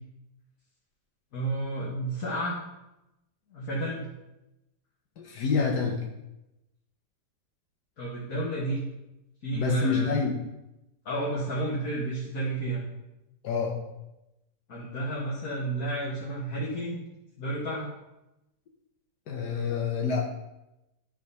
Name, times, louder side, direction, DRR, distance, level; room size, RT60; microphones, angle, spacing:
voice 1, 1.3-2.6 3.5-4.1 8.0-8.8 9.4-10.2 11.1-12.8 14.7-17.0 17.4-17.9, right 2 dB, 60° left, -6 dB, 1.9 m, -31 dB
voice 2, 5.2-6.0 9.5-10.4 13.4-13.8 19.3-20.3, left 5 dB, 75° left, -1 dB, 1.6 m, -27 dB
11.0 x 3.9 x 5.4 m, 0.94 s
omnidirectional pair, 1.7 m